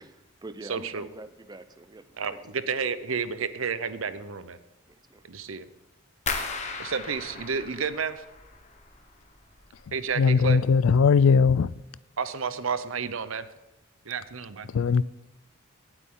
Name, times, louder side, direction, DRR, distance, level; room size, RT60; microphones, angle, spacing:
voice 1, 0.0-2.4 4.9-5.2, right 2 dB, 20° right, 0.6 m, -45 dB
voice 2, 0.6-1.1 2.2-4.6 5.2-5.7 6.8-8.2 9.9-10.6 12.2-13.5 14.0-14.7, right 5 dB, 80° right, 0.8 m, -31 dB
sound 1, 6.3-9.1 9.4-10.1 10.5-10.9 11.3-11.5, left 4 dB, 35° left, 1.2 m, -36 dB
voice 3, 9.9-11.7 14.7-15.0, left 5 dB, 80° left, 0.4 m, -20 dB
18.0 x 8.1 x 3.8 m
head